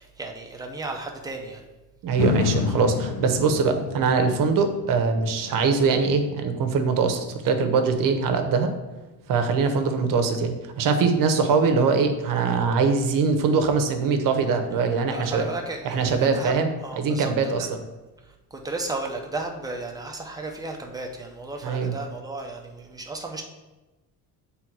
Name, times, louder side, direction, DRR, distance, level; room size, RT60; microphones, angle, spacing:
voice 1, 0.0-1.6 15.1-17.7 18.5-23.4, right 2 dB, 10° right, 1 dB, 0.7 m, -34 dB
voice 2, 2.0-8.7 9.3-15.5 15.8-16.7 17.0-17.7 21.6-21.9, right 5 dB, 55° right, 6 dB, 0.9 m, -22 dB
sound 1, 2.2-10.3 10.8-10.9, left 7 dB, 75° left, 0.5 m, -33 dB
7.8 x 3.5 x 4.6 m, 1.1 s
cardioid pair, 155°, 39 cm